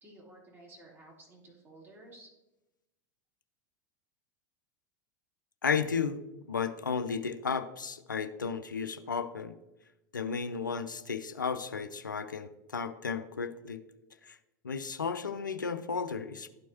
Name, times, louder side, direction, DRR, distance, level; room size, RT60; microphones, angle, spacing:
voice 1, 0.0-2.3, right 1 dB, 20° right, -1 dB, 2.6 m, -54 dB
voice 2, 5.6-6.2 6.5-9.5 10.1-13.8 14.3-14.4 14.6-16.5, left 5 dB, 90° left, 10 dB, 0.4 m, -33 dB
12.5 x 4.5 x 2.8 m, 0.97 s
hypercardioid pair, 85°, 10 cm